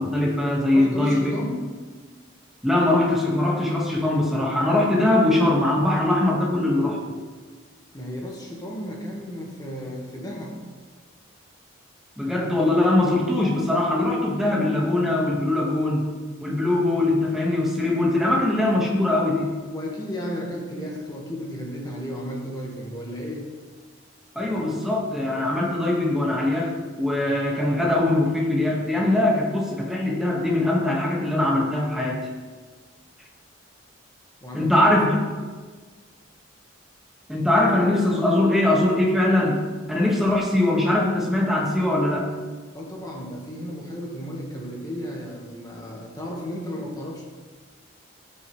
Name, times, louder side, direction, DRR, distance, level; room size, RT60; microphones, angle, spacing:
voice 1, 0.0-1.3 2.6-7.0 12.2-16.0 16.4-19.5 24.3-32.3 34.5-35.1 37.3-39.6 39.9-42.3, left 1 dB, ahead, -3 dB, 1.7 m, -21 dB
voice 2, 0.7-1.8 7.9-10.6 18.3-18.4 19.7-23.5 34.4-34.7 42.7-47.2, equal, 20° left, -2 dB, 1.6 m, -34 dB
17.5 x 6.4 x 3.3 m, 1.5 s
head